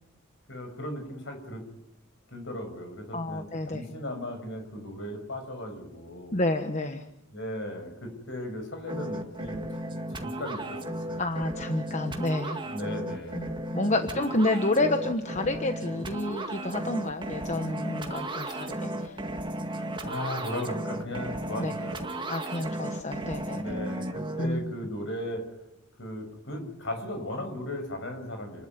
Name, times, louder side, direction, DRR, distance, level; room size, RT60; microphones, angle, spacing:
voice 1, 0.5-1.6 2.3-6.4 7.3-9.7 10.1-11.2 12.6-13.5 20.0-22.0 23.5-25.4 26.0-28.7, left 1 dB, 60° left, 6 dB, 6.3 m, -36 dB
voice 2, 3.1-3.8 6.3-7.0 11.2-12.6 13.3-19.2 21.6-21.7 22.3-23.6 24.4-24.7, left 2 dB, 35° left, 6 dB, 1.2 m, -29 dB
sound 1, 8.9-24.5, right 1 dB, 20° right, 1.9 m, -35 dB
29.5 x 12.0 x 9.6 m, 0.85 s
head